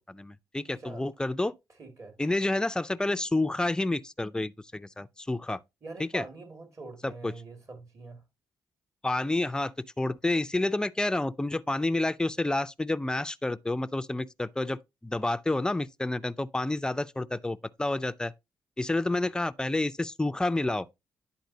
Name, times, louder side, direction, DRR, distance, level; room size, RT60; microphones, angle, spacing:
voice 1, 0.1-1.5 2.2-5.6 6.0-6.2 7.0-7.3 9.0-9.7 10.0-18.3 18.8-20.9, left 2 dB, 10° left, 0.4 m, -29 dB
voice 2, 1.8-2.1 5.8-8.2, right 3 dB, 40° right, 2.2 m, -43 dB
10.5 x 4.1 x 2.7 m
cardioid pair, 85°, 8 cm